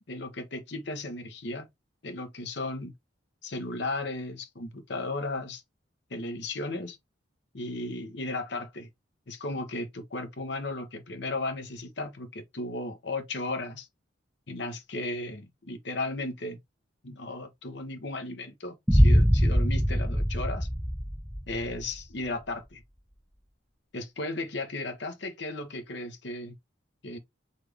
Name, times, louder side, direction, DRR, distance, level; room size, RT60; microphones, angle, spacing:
voice 1, 0.1-1.7 2.0-2.9 3.4-5.6 6.1-7.0 7.5-8.9 9.3-13.9 14.5-16.6 17.0-20.7 21.5-22.8 23.9-26.6 27.0-27.2, left 2 dB, 60° left, 0.9 m, -35 dB
Boom, 18.9-21.8, equal, ahead, 0.3 m, -23 dB
4.1 x 3.2 x 3.3 m
head